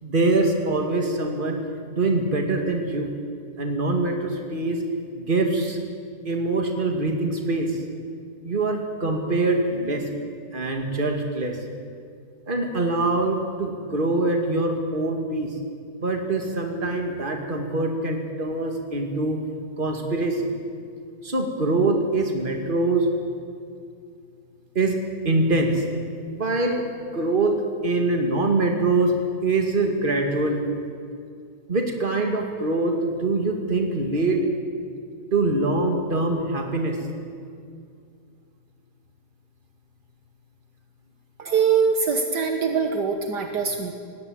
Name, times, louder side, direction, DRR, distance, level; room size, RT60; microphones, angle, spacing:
voice 1, 0.0-1.6 1.9-3.1 3.6-4.8 5.2-5.8 6.2-7.8 8.4-10.1 10.5-11.6 12.5-15.5 16.0-19.4 19.8-20.5 21.2-23.1 24.7-25.0 25.2-25.8 26.3-26.8 27.1-29.1 29.4-30.6 31.7-34.5 35.3-37.0, right 2 dB, 30° right, 3 dB, 2.4 m, -24 dB
voice 2, 41.4-43.9, right 6 dB, 65° right, 5 dB, 1.8 m, -23 dB
18.5 x 16.5 x 9.4 m, 2.3 s
omnidirectional pair, 2.0 m